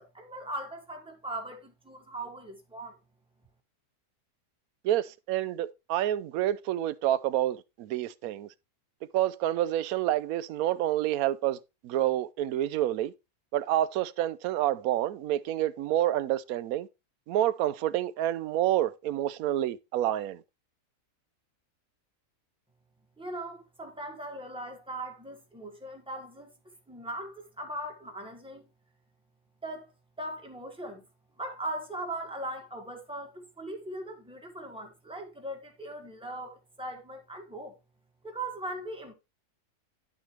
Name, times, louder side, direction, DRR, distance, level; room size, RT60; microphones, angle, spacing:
voice 1, 0.0-3.0 23.2-26.5 26.9-28.7 29.6-29.9 30.2-31.0 31.4-37.7 38.2-39.1, right 1 dB, 5° right, 1.6 m, -39 dB
voice 2, 4.8-8.5 9.1-13.1 13.5-16.9 17.3-20.4, right 13 dB, 70° right, 1.0 m, -28 dB
10.5 x 6.3 x 3.2 m
omnidirectional pair, 1.6 m